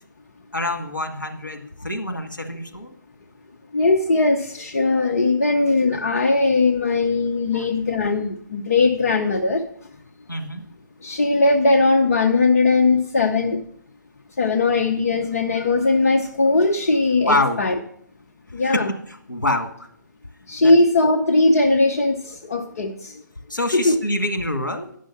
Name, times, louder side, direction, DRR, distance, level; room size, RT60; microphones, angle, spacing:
voice 1, 0.5-3.0 7.5-7.7 10.3-10.7 17.3-17.6 18.5-18.8 19.1-19.9 20.6-20.7 23.5-24.9, left 1 dB, 85° left, 3 dB, 1.6 m, -26 dB
voice 2, 3.7-9.7 11.0-13.7 14.4-17.7 18.5-18.9 20.5-23.2 23.7-24.0, left 3 dB, 55° left, 5 dB, 0.8 m, -19 dB
9.9 x 6.2 x 5.7 m, 0.67 s
figure-of-eight pair, 140°, 10 cm